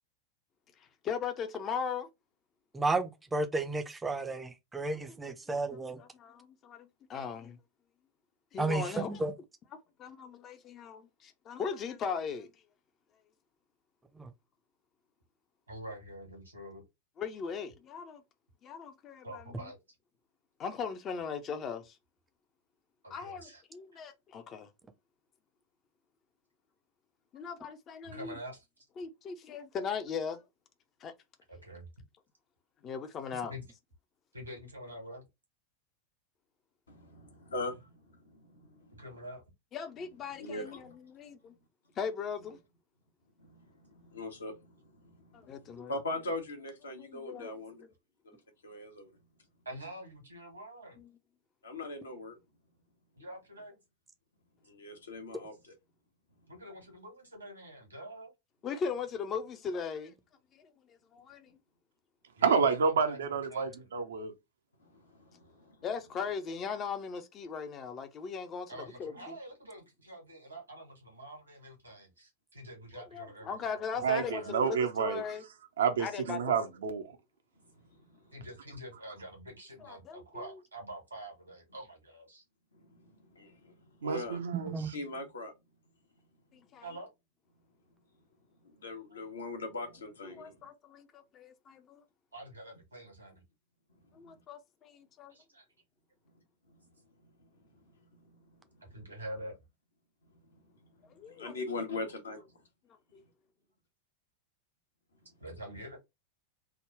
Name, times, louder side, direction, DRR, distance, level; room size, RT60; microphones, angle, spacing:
voice 1, 1.0-2.1 5.1-7.6 8.5-9.3 10.0-12.5 17.2-18.2 18.6-19.7 20.6-22.0 23.1-24.7 27.3-28.4 29.0-30.4 31.0-31.1 32.8-33.5 39.7-40.8 41.1-41.5 42.0-42.6 45.3-45.9 47.0-47.5 51.0-51.1 58.6-60.2 60.5-61.6 65.8-69.4 72.9-75.4 76.0-76.4 79.8-80.2 86.5-86.9 90.4-92.0 94.1-95.3 101.2-101.5 103.1-103.2, left 6 dB, 30° left, 0.6 m, -39 dB
voice 2, 2.7-6.0 8.6-9.3 14.2-14.3 84.5-84.9, right 3 dB, 10° right, 0.5 m, -32 dB
voice 3, 15.7-16.8 19.2-19.8 23.0-23.6 23.9-24.0 28.0-28.6 31.5-31.9 33.5-33.6 34.3-35.3 38.9-39.4 49.6-51.0 53.1-53.8 56.5-58.3 62.4-63.9 68.7-74.5 78.3-82.4 86.8-87.1 92.3-93.4 95.3-95.7 98.8-99.6 105.4-106.0, right 1 dB, 80° right, 1.6 m, -46 dB
voice 4, 36.9-39.1 40.3-41.0 43.4-47.8 48.2-49.2 51.6-52.4 54.6-55.7 64.8-65.8 66.2-66.3 77.6-78.4 82.7-84.4 84.9-85.5 88.6-90.7 93.9-94.4 96.3-98.9 100.3-102.7, left 2 dB, 70° left, 1.0 m, -42 dB
voice 5, 62.4-64.3 74.0-75.2 75.8-77.1 84.0-84.9, right 6 dB, 65° right, 0.6 m, -29 dB
3.5 x 2.2 x 3.2 m
figure-of-eight pair, 90°, 0 cm